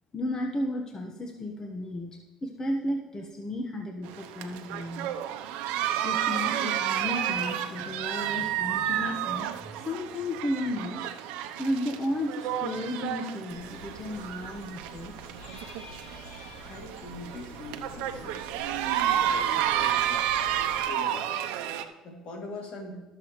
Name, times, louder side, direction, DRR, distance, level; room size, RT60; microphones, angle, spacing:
voice 1, 0.1-5.1 6.0-11.0 11.6-15.1, left 1 dB, 30° left, 2 dB, 1.3 m, -33 dB
sound 1, 4.1-21.8, right 10 dB, 80° right, 0.7 m, -31 dB
sound 2, 13.5-20.9, left 1 dB, 75° left, 3.0 m, -47 dB
voice 2, 16.5-18.8 19.2-21.4 22.0-23.0, left 2 dB, 60° left, 2 dB, 2.8 m, -43 dB
19.5 x 7.0 x 3.2 m, 1.2 s
supercardioid pair, 75°, 2 cm